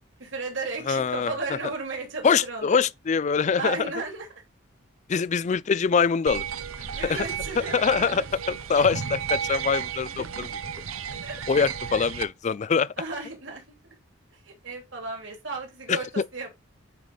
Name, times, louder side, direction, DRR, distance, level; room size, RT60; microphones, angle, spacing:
voice 1, 0.2-2.8 3.6-4.4 5.1-5.2 6.9-8.3 10.1-10.2 11.2-11.4 13.0-13.6 14.3-16.5, right 3 dB, 65° right, 3.0 m, -35 dB
voice 2, 0.9-1.3 2.2-3.8 5.1-6.4 7.0-7.2 7.6-10.5 11.5-12.9 15.9-16.0, left 5 dB, 35° left, 0.4 m, -24 dB
sound 1, 6.3-12.2, right 8 dB, 90° right, 0.8 m, -33 dB
9.0 x 5.0 x 4.1 m
head